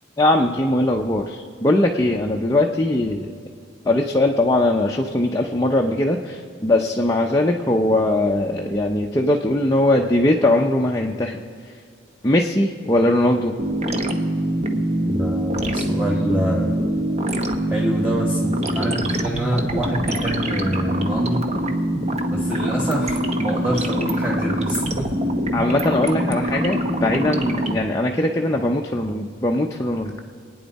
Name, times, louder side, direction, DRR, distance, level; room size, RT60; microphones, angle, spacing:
voice 1, 0.2-3.3 3.8-11.8 12.2-13.5 25.5-30.2, left 1 dB, 20° left, 0 dB, 0.7 m, -20 dB
sound 1, 13.6-27.8, right 1 dB, 35° right, 1.0 m, -24 dB
voice 2, 15.0-16.7 17.7-21.5 22.3-25.1, equal, 5° right, -3 dB, 1.4 m, -26 dB
25.5 x 9.5 x 4.2 m, 2.1 s
head